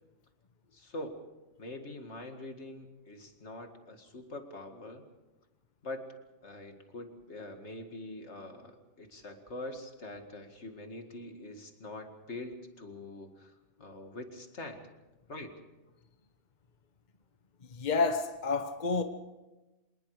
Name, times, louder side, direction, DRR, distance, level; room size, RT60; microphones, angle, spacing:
voice 1, 0.7-1.2 1.6-5.0 5.8-6.1 6.4-13.5 13.8-14.9 15.3-15.5, left 2 dB, 70° left, 2.4 m, -44 dB
voice 2, 17.7-19.0, left 4 dB, 40° left, 1.2 m, -29 dB
26.0 x 20.5 x 4.9 m
omnidirectional pair, 1.2 m